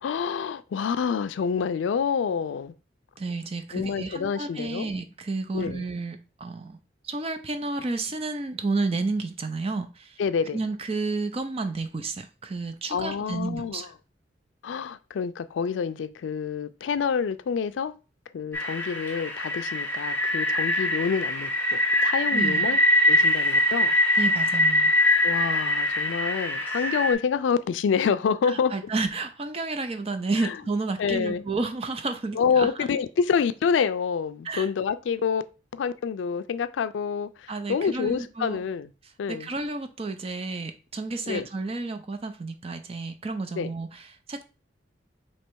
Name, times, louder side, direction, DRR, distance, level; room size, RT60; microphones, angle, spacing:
voice 1, 0.0-2.7 3.7-4.9 5.5-5.8 10.2-10.6 12.9-13.9 14.6-17.9 18.3-21.5 22.0-22.8 23.1-23.9 25.2-28.8 30.4-30.6 31.0-31.4 32.3-35.4 35.7-38.9 39.2-39.5 41.3-41.5 43.6-43.7, left 6 dB, 85° left, 0.3 m, -27 dB
voice 2, 3.2-10.2 10.5-13.9 22.3-22.6 24.2-24.9 28.4-32.7 34.4-34.7 37.5-38.6 39.3-44.0 44.3-44.5, right 3 dB, 35° right, 0.5 m, -31 dB
sound 1, 18.5-27.1, left 1 dB, 10° left, 0.9 m, -23 dB
3.1 x 2.9 x 4.6 m
head